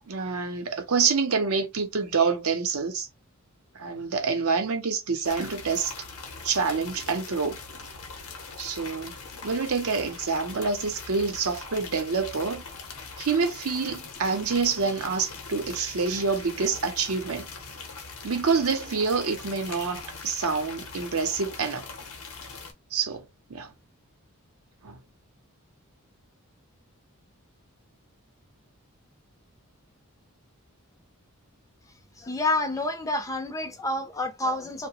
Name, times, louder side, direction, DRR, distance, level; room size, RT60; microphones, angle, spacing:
voice 1, 0.1-3.1 3.8-5.9 6.4-7.6 8.6-9.1 9.4-12.6 13.2-17.5 18.2-21.9 22.9-23.7 24.8-25.0, right 5 dB, 75° right, 0.6 m, -27 dB
sound 1, 5.2-22.7, left 4 dB, 70° left, 0.7 m, -41 dB
voice 2, 32.2-34.9, left 2 dB, 15° left, 0.4 m, -28 dB
2.8 x 2.1 x 2.9 m
head